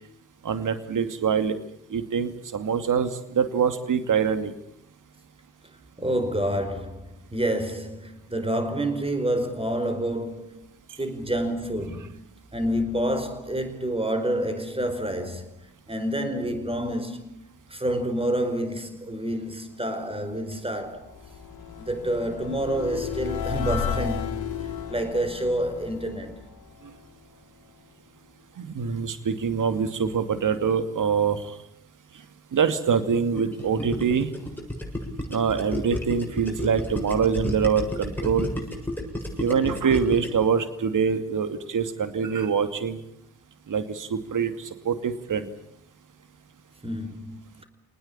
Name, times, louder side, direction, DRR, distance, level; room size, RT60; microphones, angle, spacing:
voice 1, 0.4-1.6 1.9-4.5 28.6-31.5 32.5-34.3 35.3-38.5 39.4-43.0 43.7-45.5, right 6 dB, 40° right, 2.5 m, -24 dB
voice 2, 6.0-10.7 11.0-21.1 21.8-24.3 24.9-26.4 46.8-47.6, right 1 dB, 10° right, 4.8 m, -28 dB
sound 1, 20.3-27.4, left 7 dB, 50° left, 3.6 m, -34 dB
Gurgling, 33.4-40.4, left 1 dB, 5° left, 7.3 m, -31 dB
25.5 x 19.5 x 8.8 m
figure-of-eight pair, 45°, 46 cm